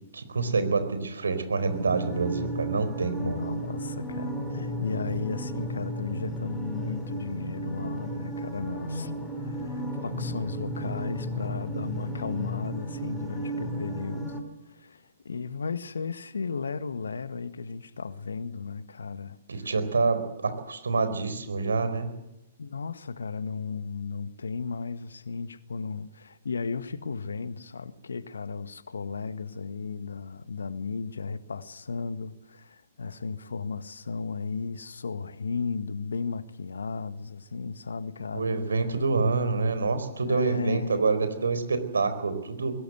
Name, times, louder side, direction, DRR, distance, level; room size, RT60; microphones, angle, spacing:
voice 1, 0.1-3.4 19.5-22.1 38.3-42.7, right 4 dB, 80° right, 4.4 m, -27 dB
sound 1, 1.7-14.4, right 1 dB, 10° left, 4.5 m, -34 dB
voice 2, 3.2-9.1 9.4-14.4 14.6-19.7 22.6-38.5 40.2-41.4, left 5 dB, 75° left, 1.6 m, -35 dB
22.0 x 19.0 x 8.0 m
figure-of-eight pair, 120°, 0 cm